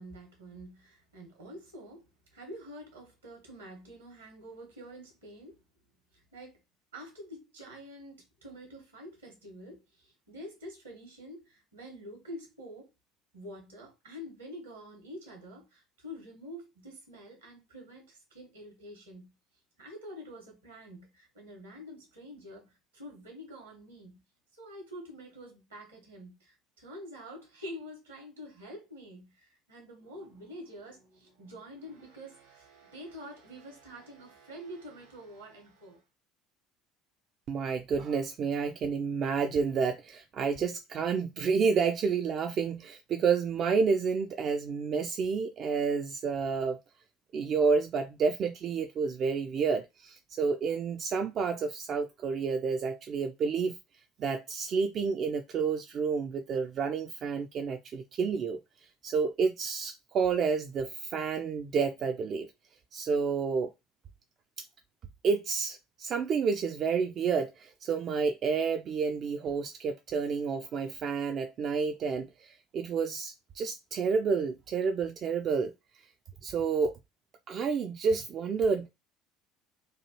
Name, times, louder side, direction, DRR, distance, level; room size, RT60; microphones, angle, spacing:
voice 1, 0.0-5.6 6.1-6.6 6.9-12.9 13.3-19.4 19.8-24.2 24.6-36.0, equal, 80° right, 1.2 m, -47 dB
voice 2, 37.5-46.8 47.3-53.8 54.2-58.6 59.0-62.5 62.9-63.7 65.2-75.7 76.4-77.0 77.5-78.9, right 5 dB, 45° right, 0.3 m, -30 dB
3.0 x 2.3 x 3.0 m
figure-of-eight pair, 60°, 0 cm